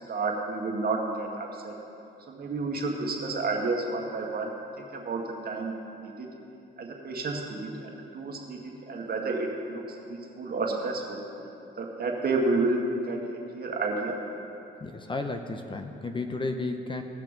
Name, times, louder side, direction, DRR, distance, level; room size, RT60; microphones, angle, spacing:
voice 1, 0.0-1.7 2.3-4.5 4.8-5.8 6.0-6.3 6.8-8.6 8.9-11.2 11.8-13.2 13.5-14.2, right 3 dB, 50° right, 0 dB, 2.0 m, -30 dB
voice 2, 14.8-17.0, left 3 dB, 25° left, 5 dB, 0.8 m, -33 dB
18.0 x 6.5 x 5.2 m, 2.8 s
cardioid pair, 90°, 20 cm